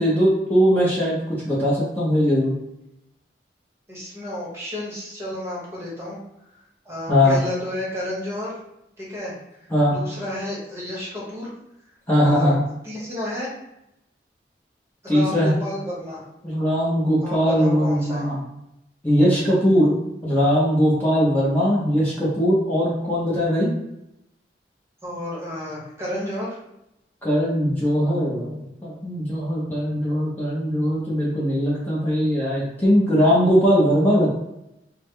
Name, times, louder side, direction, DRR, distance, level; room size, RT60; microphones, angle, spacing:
voice 1, 0.0-2.5 7.1-7.4 9.7-9.9 12.1-12.5 15.1-15.5 16.4-18.4 19.0-20.0 20.2-23.7 27.2-34.3, equal, 10° left, -8 dB, 0.7 m, -20 dB
voice 2, 3.9-6.2 6.8-8.6 9.0-9.4 9.9-11.5 12.2-12.5 12.8-13.5 15.0-16.3 17.2-18.2 25.0-26.6, left 1 dB, 15° right, -6 dB, 1.0 m, -31 dB
3.5 x 2.1 x 3.2 m, 0.86 s
head